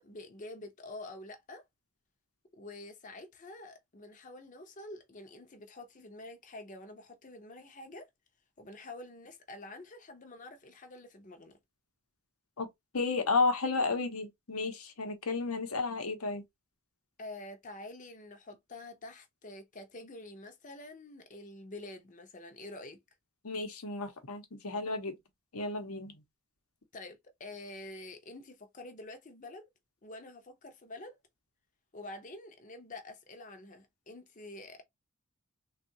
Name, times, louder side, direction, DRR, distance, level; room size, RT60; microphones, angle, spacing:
voice 1, 0.0-1.6 2.5-8.1 8.6-11.6 17.2-23.0 26.9-29.7 30.0-31.2 31.9-34.8, left 2 dB, 35° left, 0.7 m, -47 dB
voice 2, 12.9-16.4 23.4-25.1 25.5-26.2, left 3 dB, 75° left, 0.9 m, -32 dB
3.6 x 2.4 x 2.7 m
head